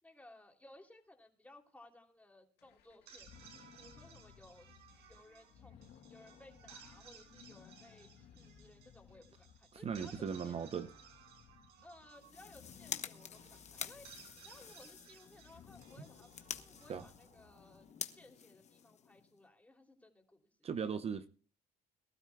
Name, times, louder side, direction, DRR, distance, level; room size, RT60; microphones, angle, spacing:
voice 1, 0.0-3.3 3.8-4.7 5.1-10.6 11.8-14.0 14.3-16.3 16.6-17.9 18.1-21.0, left 2 dB, 10° left, 3.0 m, -60 dB
sound 1, 2.6-18.0, left 8 dB, 75° left, 2.0 m, -61 dB
sound 2, 2.9-18.1, right 7 dB, 85° right, 5.5 m, -60 dB
voice 2, 9.7-10.9 16.9-17.0 20.6-21.3, right 6 dB, 35° right, 0.8 m, -38 dB
sound 3, 12.1-19.4, left 8 dB, 45° left, 1.2 m, -48 dB
23.0 x 12.5 x 2.3 m
cardioid pair, 110°, 17 cm